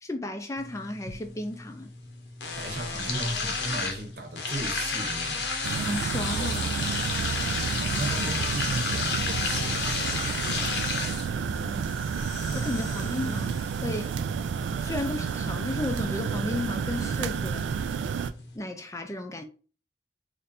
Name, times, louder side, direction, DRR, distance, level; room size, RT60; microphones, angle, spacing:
voice 1, 0.0-1.9 5.8-6.9 11.5-11.9 12.5-14.1 14.8-17.7 18.5-19.4, left 2 dB, 15° left, 0.4 m, -34 dB
sound 1, 0.6-18.6, left 4 dB, 80° left, 0.9 m, -33 dB
voice 2, 2.6-5.5 6.1-6.3 7.8-11.0, right 2 dB, 60° right, 0.9 m, -36 dB
sound 2, 5.6-18.3, right 6 dB, 90° right, 0.3 m, -30 dB
3.2 x 2.5 x 4.1 m
head